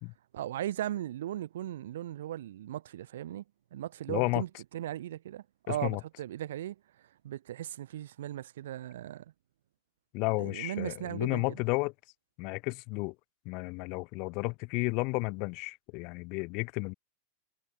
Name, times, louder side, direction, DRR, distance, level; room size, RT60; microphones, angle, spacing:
voice 1, 0.3-3.4 3.7-6.8 7.2-9.2 10.4-11.4, right 12 dB, 60° right, 5.5 m, -37 dB
voice 2, 4.1-4.4 5.7-6.0 10.1-11.9 12.4-13.1 13.5-16.9, left 29 dB, 45° left, 2.1 m, -32 dB
figure-of-eight pair, 90°, 0 cm